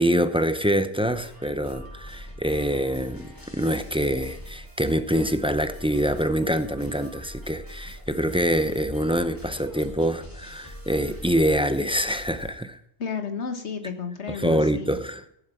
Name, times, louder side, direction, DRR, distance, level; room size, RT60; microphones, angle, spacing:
voice 1, 0.0-12.8 14.3-15.4, equal, 5° right, 0.5 m, -25 dB
sound 1, 1.0-12.5, equal, 15° left, 3.1 m, -43 dB
voice 2, 13.0-15.0, left 5 dB, 80° left, 1.7 m, -32 dB
14.5 x 7.6 x 5.8 m
omnidirectional pair, 1.2 m